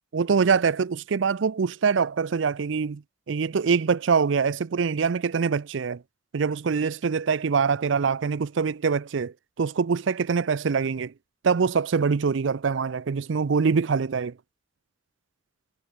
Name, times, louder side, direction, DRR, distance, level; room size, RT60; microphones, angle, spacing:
voice 1, 0.1-6.0 6.3-11.1 11.4-14.3, right 5 dB, 70° right, 0.5 m, -24 dB
head